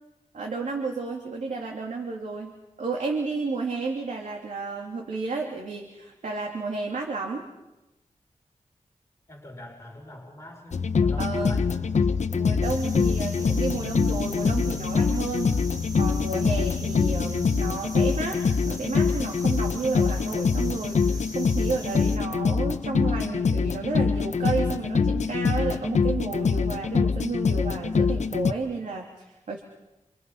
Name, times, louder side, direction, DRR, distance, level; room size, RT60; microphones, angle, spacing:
voice 1, 0.3-7.5 11.2-11.7 12.3-15.5 16.0-18.4 18.6-29.6, right 4 dB, 80° right, 1 dB, 3.2 m, -32 dB
voice 2, 9.3-12.2, left 1 dB, 20° left, -1 dB, 6.1 m, -44 dB
sound 1, 10.7-28.5, left 5 dB, 65° left, 1.1 m, -24 dB
sound 2, 12.6-22.2, right 1 dB, 30° right, 3.4 m, -43 dB
28.5 x 27.5 x 5.7 m, 0.98 s
wide cardioid pair, 80°, 13 cm